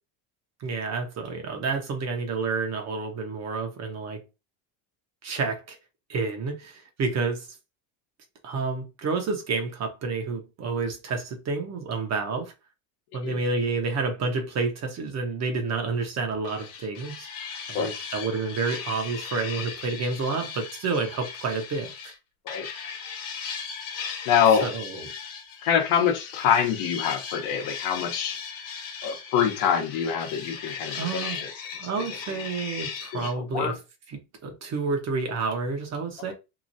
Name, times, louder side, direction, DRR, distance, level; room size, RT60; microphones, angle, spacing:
voice 1, 0.6-4.2 5.2-5.8 6.1-7.5 8.4-12.5 13.1-17.3 17.7-21.9 24.6-25.1 30.9-31.4 31.8-33.8 34.1-36.3, right 4 dB, 35° right, 0.8 m, -29 dB
sound 1, 16.4-22.1 22.5-33.3, left 6 dB, 50° left, 1.3 m, -37 dB
voice 2, 24.3-24.7 25.6-28.4 29.0-31.5 31.8-32.1 32.3-32.4 33.1-33.7, left 8 dB, 65° left, 1.0 m, -25 dB
2.9 x 2.4 x 2.6 m
supercardioid pair, 125°, 44 cm